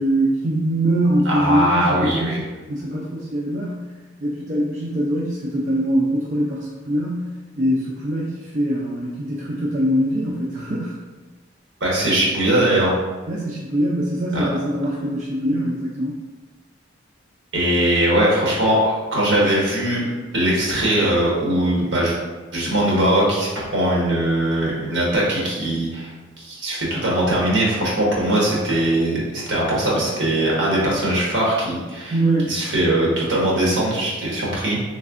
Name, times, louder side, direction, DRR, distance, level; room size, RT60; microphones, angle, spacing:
voice 1, 0.0-3.9 4.2-11.0 13.3-16.2 32.1-32.6, right 1 dB, 40° right, -5 dB, 0.4 m, -23 dB
voice 2, 1.2-2.4 11.8-12.9 17.5-20.0 20.3-22.1 22.5-26.1 26.4-32.1 32.4-34.8, right 1 dB, 65° right, -5 dB, 1.1 m, -20 dB
3.4 x 3.2 x 2.4 m, 1.3 s
head